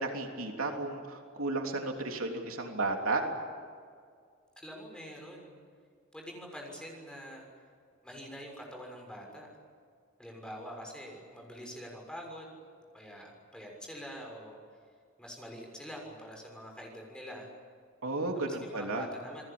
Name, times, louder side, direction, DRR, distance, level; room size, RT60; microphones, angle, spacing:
voice 1, 0.0-3.2 18.0-19.1, right 2 dB, 75° right, 2 dB, 3.3 m, -33 dB
voice 2, 4.6-5.6 6.1-7.5 8.0-9.5 10.2-12.6 12.9-14.6 15.2-17.5 18.3-19.4, equal, 5° left, 0 dB, 6.6 m, -45 dB
29.5 x 20.5 x 8.8 m, 2.1 s
head